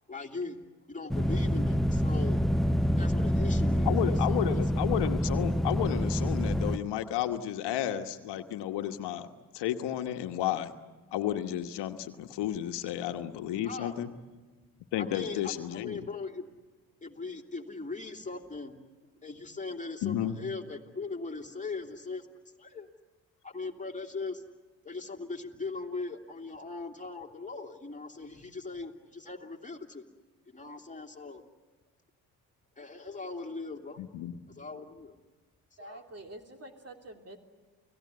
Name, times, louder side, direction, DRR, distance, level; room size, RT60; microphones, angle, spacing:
voice 1, 0.1-0.6 0.9-2.5 3.0-4.8 13.6-14.1 15.0-16.5 17.0-18.8 19.2-22.3 22.6-22.9 23.4-24.4 24.8-30.0 30.5-31.4 32.8-34.0 34.6-35.1 35.8-36.0, left 3 dB, 20° left, 3 dB, 2.8 m, -40 dB
sound 1, 1.1-6.8, equal, ahead, 0.7 m, -27 dB
voice 2, 3.8-9.3 9.5-10.7 11.1-14.1 14.9-16.1 20.0-20.4 34.0-34.3, left 11 dB, 70° left, 7 dB, 1.4 m, -32 dB
voice 3, 35.8-37.4, right 1 dB, 35° right, 4 dB, 3.2 m, -47 dB
29.5 x 17.5 x 9.7 m, 1.3 s
hypercardioid pair, 55°, 42 cm